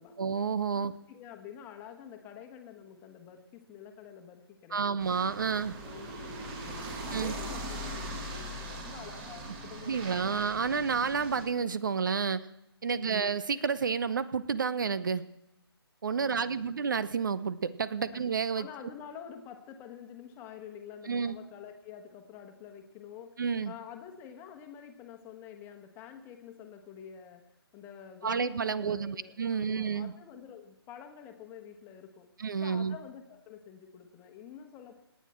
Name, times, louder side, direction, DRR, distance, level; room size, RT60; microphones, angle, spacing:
voice 1, 0.2-0.9 4.7-5.7 7.1-7.3 9.8-12.4 12.8-15.2 16.0-18.7 21.1-21.4 23.4-23.7 28.2-30.1 32.4-33.0, right 6 dB, 50° right, 15 dB, 0.6 m, -30 dB
voice 2, 0.7-5.0 5.5-10.4 12.9-13.4 16.1-16.9 18.0-18.2 18.6-23.4 23.6-32.3 32.6-34.9, left 8 dB, 15° left, 6 dB, 1.3 m, -48 dB
sound 1, 5.0-11.4, right 1 dB, 20° right, 2.2 m, -40 dB
27.0 x 9.4 x 4.5 m, 0.88 s
figure-of-eight pair, 140°, 14 cm